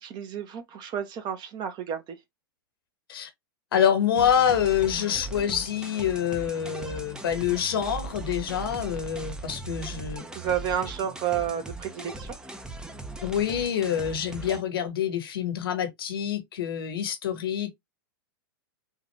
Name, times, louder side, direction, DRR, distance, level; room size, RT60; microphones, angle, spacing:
voice 1, 0.0-2.2 10.3-12.4, right 9 dB, 35° right, 1.0 m, -31 dB
voice 2, 3.7-10.2 13.2-17.8, left 9 dB, 75° left, 1.2 m, -26 dB
sound 1, 4.2-14.6, right 2 dB, 5° right, 0.6 m, -39 dB
3.7 x 2.5 x 3.2 m
hypercardioid pair, 105°, 12 cm